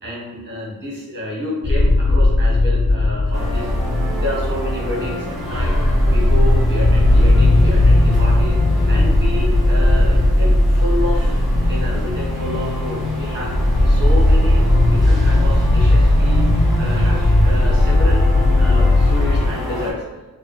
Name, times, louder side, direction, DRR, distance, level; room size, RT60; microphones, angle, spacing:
voice 1, 0.0-3.7 4.1-5.7 6.0-8.6 8.9-13.5 13.8-16.5 16.8-18.2 18.6-20.0, left 1 dB, 30° right, -3 dB, 1.2 m, -29 dB
sound 1, 1.6-19.5, left 1 dB, 20° left, 0.3 m, -16 dB
sound 2, 3.3-19.9, left 1 dB, ahead, 1.0 m, -29 dB
3.7 x 2.3 x 4.4 m, 1.2 s
wide cardioid pair, 170°, 35 cm